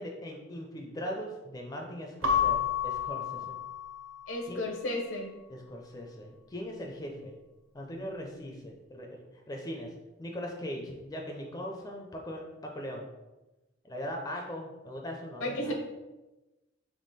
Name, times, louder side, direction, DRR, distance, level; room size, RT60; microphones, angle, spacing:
voice 1, 0.0-3.6 4.5-4.6 5.5-7.3 7.7-9.9 10.2-13.1 13.8-15.7, equal, 20° left, 1 dB, 0.4 m, -40 dB
Keyboard (musical) / Bell, 2.2-4.7, left 8 dB, 75° right, 0.6 m, -30 dB
voice 2, 4.3-5.3 15.4-15.7, left 1 dB, 75° left, 2 dB, 0.8 m, -33 dB
3.6 x 2.9 x 4.0 m, 1.1 s
head